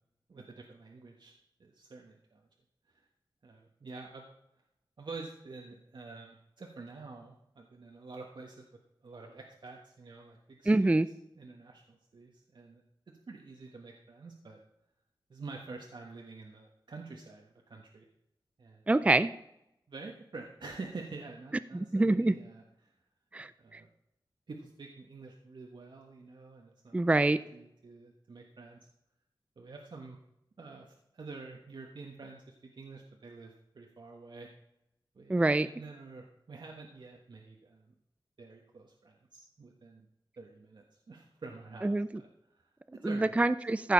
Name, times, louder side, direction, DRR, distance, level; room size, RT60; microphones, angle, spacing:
voice 1, 0.3-1.3 1.6-2.4 2.9-3.0 3.4-4.2 5.0-8.7 9.0-10.9 11.3-12.8 13.3-14.6 15.3-18.0 18.6-18.9 19.9-22.9 23.6-23.9 24.5-28.8 29.6-30.2 30.6-34.5 35.1-37.9 38.4-40.0 40.4-43.3, right 3 dB, 60° right, 1 dB, 1.4 m, -48 dB
voice 2, 10.7-11.1 18.9-19.3 21.7-22.3 23.3-23.8 26.9-27.4 35.3-35.7 41.8-42.1 43.0-43.9, right 2 dB, 15° right, 14 dB, 0.4 m, -26 dB
14.5 x 6.7 x 5.3 m, 0.82 s
wide cardioid pair, 105°, 8 cm